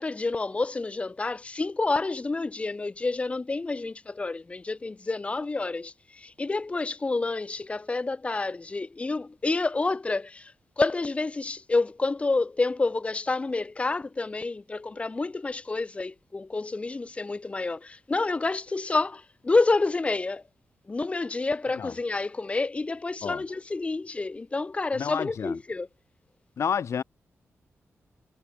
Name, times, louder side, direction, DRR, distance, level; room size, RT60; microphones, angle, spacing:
voice 1, 0.0-20.4 20.9-25.9, left 3 dB, 25° left, 2.6 m, -29 dB
voice 2, 25.0-25.6 26.6-27.0, left 7 dB, 65° left, 6.9 m, -30 dB
wide cardioid pair, 155°, 5 cm